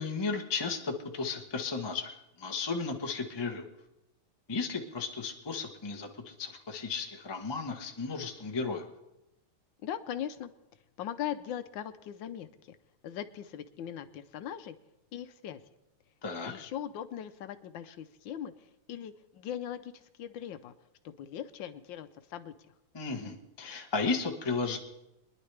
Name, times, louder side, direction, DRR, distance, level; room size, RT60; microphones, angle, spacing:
voice 1, 0.0-3.6 4.5-8.9 16.2-16.5 22.9-24.8, left 4 dB, 35° left, 3 dB, 0.4 m, -34 dB
voice 2, 9.8-10.5 11.0-12.8 13.0-14.8 15.1-15.6 16.4-20.7 21.0-22.5, left 10 dB, 70° left, 10 dB, 1.3 m, -40 dB
23.5 x 10.5 x 3.3 m, 0.90 s
omnidirectional pair, 2.4 m